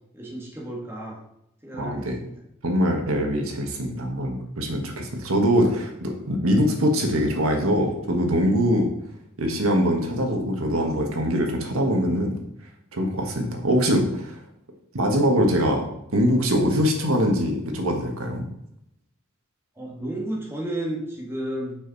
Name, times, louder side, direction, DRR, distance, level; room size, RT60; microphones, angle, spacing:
voice 1, 0.1-1.2 1.6-2.4 19.8-21.8, right 1 dB, 10° right, -3 dB, 1.8 m, -32 dB
voice 2, 1.8-2.2 2.6-8.9 9.4-12.4 12.9-14.4 14.9-15.8 16.1-18.5, equal, 75° right, 2 dB, 1.5 m, -23 dB
6.4 x 6.1 x 4.0 m, 0.80 s
head